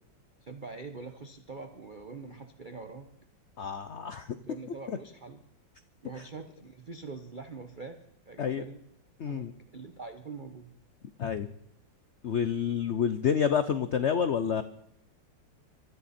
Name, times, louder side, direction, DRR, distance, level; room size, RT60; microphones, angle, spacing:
voice 1, 0.4-3.1 4.4-5.4 6.0-8.8 9.2-9.5 9.7-10.7, right 4 dB, 30° right, 7 dB, 1.0 m, -44 dB
voice 2, 3.6-4.4 4.9-5.0 8.4-8.6 9.2-9.5 11.2-11.5 12.2-14.6, left 7 dB, 65° left, 12 dB, 0.7 m, -28 dB
24.0 x 14.0 x 4.3 m, 0.75 s
omnidirectional pair, 2.1 m